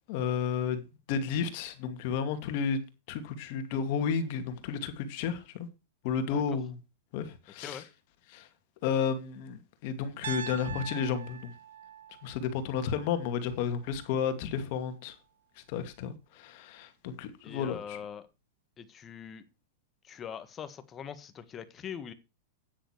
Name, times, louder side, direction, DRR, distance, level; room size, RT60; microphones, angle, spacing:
voice 1, 0.1-2.8 3.1-5.7 6.0-6.8 7.1-7.8 8.3-8.5 8.8-11.5 12.2-15.2 15.7-18.0, left 7 dB, 50° left, 2.4 m, -32 dB
Piano, 10.2-14.3, right 8 dB, 80° right, 1.2 m, -44 dB
voice 2, 17.4-18.3 18.8-19.4 20.0-22.1, left 8 dB, 25° left, 1.6 m, -42 dB
10.0 x 9.5 x 4.7 m
hypercardioid pair, 135°, 0 cm